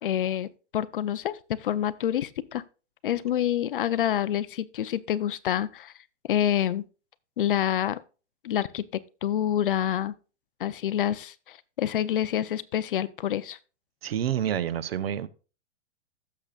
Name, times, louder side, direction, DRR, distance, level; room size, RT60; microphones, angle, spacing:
voice 1, 0.0-2.6 3.0-5.9 6.3-6.8 7.4-8.0 8.4-8.8 9.2-10.1 10.6-13.6, left 11 dB, 50° left, 0.5 m, -27 dB
voice 2, 14.0-15.3, right 10 dB, 55° right, 0.7 m, -28 dB
16.0 x 6.8 x 2.3 m
hypercardioid pair, 175°, 35 cm